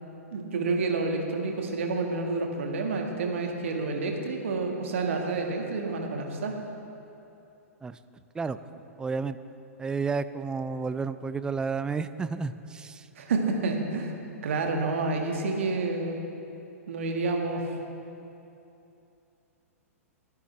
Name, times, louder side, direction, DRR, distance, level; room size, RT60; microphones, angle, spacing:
voice 1, 0.3-6.6 13.1-14.1 14.4-16.2 16.9-17.7, right 3 dB, 60° right, 2 dB, 1.7 m, -29 dB
voice 2, 9.0-9.4 9.8-13.1, right 4 dB, 10° right, 13 dB, 0.4 m, -31 dB
22.0 x 10.5 x 3.3 m, 2.8 s
figure-of-eight pair, 105°, 8 cm